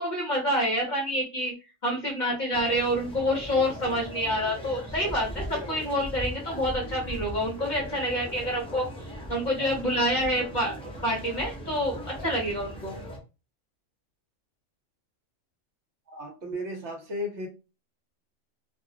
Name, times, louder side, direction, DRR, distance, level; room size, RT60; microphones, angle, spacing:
voice 1, 0.0-1.5 1.8-13.0, equal, 45° left, -1 dB, 0.7 m, -28 dB
sound 1, 2.5-13.2, equal, 10° left, 0.3 m, -39 dB
voice 2, 16.1-17.5, left 1 dB, 65° right, 3 dB, 1.0 m, -34 dB
2.4 x 2.0 x 3.7 m, 0.30 s
omnidirectional pair, 1.4 m